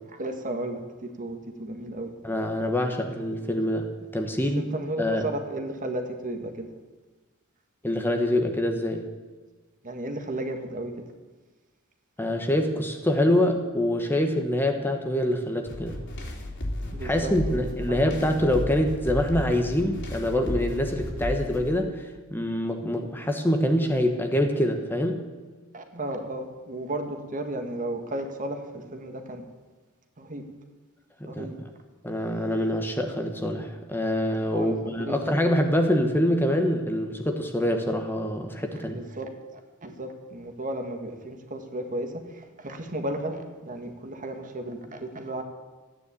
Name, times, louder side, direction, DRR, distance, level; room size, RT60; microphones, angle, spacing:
voice 1, 0.2-0.8 1.2-2.1 4.5-6.7 9.8-10.9 16.9-18.4 25.7-29.4 30.2-30.4 31.3-31.5 34.5-35.3 38.7-45.4, right 1 dB, 40° right, 5 dB, 1.7 m, -34 dB
voice 2, 2.2-4.7 5.0-5.3 7.8-9.1 12.2-16.0 17.0-25.2 31.2-31.5 32.0-39.0, left 1 dB, 10° left, 4 dB, 1.2 m, -25 dB
sound 1, 15.7-21.7, left 1 dB, 60° left, 3.2 m, -33 dB
14.5 x 9.7 x 8.5 m, 1.3 s
head